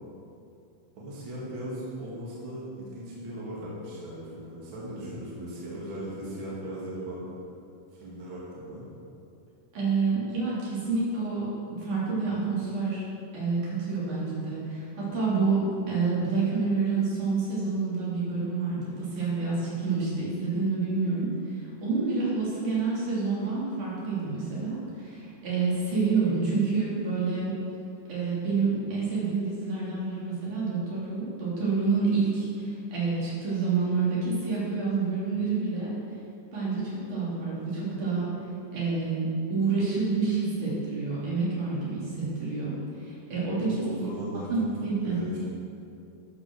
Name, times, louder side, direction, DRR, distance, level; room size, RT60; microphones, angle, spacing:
voice 1, 1.0-7.3 7.9-8.8 43.8-45.4, equal, 40° right, -7 dB, 2.7 m, -38 dB
voice 2, 9.7-11.5 11.8-13.0 13.3-15.6 15.9-27.5 28.1-35.9 36.5-38.3 38.7-43.7 44.5-45.2, right 4 dB, 70° right, -8 dB, 4.6 m, -28 dB
13.0 x 6.3 x 6.3 m, 2.6 s
omnidirectional pair, 3.7 m